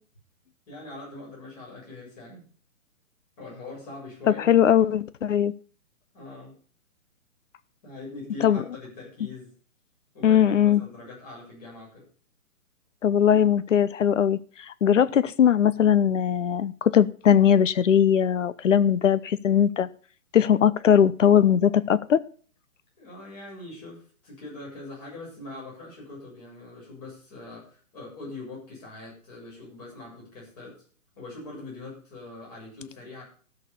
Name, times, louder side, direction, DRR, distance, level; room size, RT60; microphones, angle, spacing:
voice 1, 0.7-2.5 3.4-4.6 6.1-6.5 7.8-9.5 10.1-10.4 10.8-12.0 23.0-30.8 31.2-33.2, left 2 dB, 25° left, 7.2 m, -42 dB
voice 2, 4.3-5.5 8.4-8.6 10.2-10.8 13.0-19.9 20.3-22.2, left 9 dB, 60° left, 0.9 m, -20 dB
13.0 x 6.6 x 7.0 m
hypercardioid pair, 180°, 42 cm